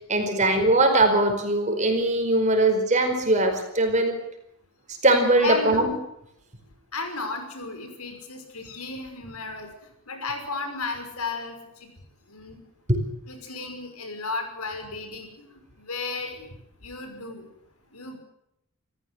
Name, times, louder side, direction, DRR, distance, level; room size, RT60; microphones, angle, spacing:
voice 1, 0.1-4.2 5.0-5.9 12.9-13.0, right 2 dB, 30° right, 5 dB, 4.9 m, -21 dB
voice 2, 5.4-5.9 6.9-9.7 10.1-11.9 12.3-12.6 13.3-16.5 16.8-17.4 17.9-18.2, left 3 dB, 85° left, 5 dB, 5.9 m, -34 dB
28.5 x 15.0 x 8.0 m, 0.77 s
head